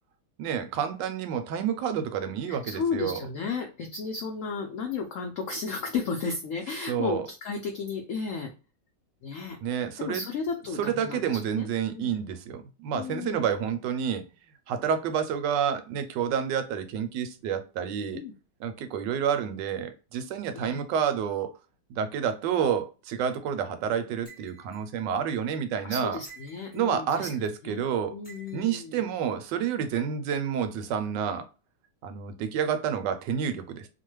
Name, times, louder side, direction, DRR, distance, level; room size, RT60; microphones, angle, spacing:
voice 1, 0.4-3.2 6.9-7.2 9.6-10.3 10.8-14.2 14.7-18.2 18.6-21.5 21.9-26.2 26.7-28.1 28.5-31.5 32.0-33.9, right 8 dB, 80° right, 1.2 m, -29 dB
voice 2, 2.5-8.5 9.2-9.6 10.0-12.1 12.9-13.5 18.1-18.3 20.5-20.8 25.8-27.3 27.6-27.9 28.1-29.0, left 5 dB, 80° left, 0.7 m, -34 dB
sound 1, 24.2-24.8 26.2-26.9 28.2-28.8, right 5 dB, 15° left, 0.3 m, -51 dB
2.9 x 2.1 x 3.0 m
omnidirectional pair, 1.9 m